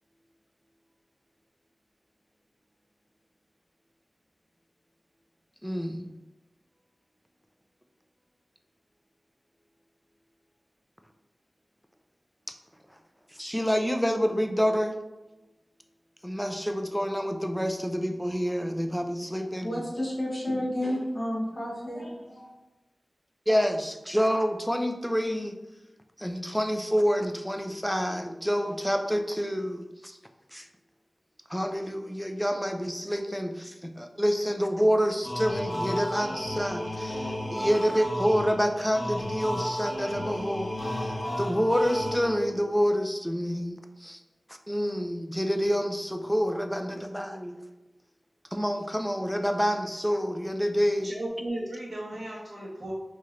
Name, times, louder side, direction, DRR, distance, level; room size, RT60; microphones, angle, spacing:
voice 1, 5.6-6.2 13.3-14.9 16.2-19.8 23.5-25.6 26.2-30.2 30.5-30.7 31.5-44.2 44.5-47.6 48.5-51.1, equal, ahead, 5 dB, 0.4 m, -28 dB
voice 2, 19.3-22.5, left 1 dB, 40° left, -5 dB, 0.9 m, -31 dB
sound 1, 35.2-42.6, left 1 dB, 80° left, 1.1 m, -33 dB
voice 3, 51.0-52.9, right 1 dB, 60° right, -7 dB, 0.8 m, -35 dB
4.3 x 3.0 x 2.4 m, 1.0 s
wide cardioid pair, 65°, 0 cm